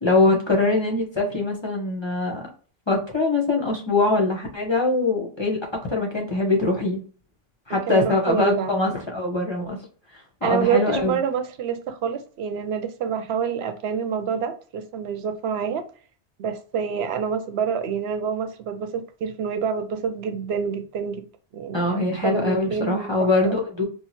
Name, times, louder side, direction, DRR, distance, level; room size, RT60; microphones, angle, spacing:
voice 1, 0.0-2.5 2.9-5.6 5.9-7.0 7.7-9.8 10.1-11.2 21.7-23.8, left 2 dB, 30° left, 0.7 m, -22 dB
voice 2, 7.9-8.8 10.4-15.9 16.4-21.2 21.5-23.6, right 7 dB, 85° right, 0.8 m, -27 dB
3.0 x 2.1 x 4.0 m
omnidirectional pair, 1.0 m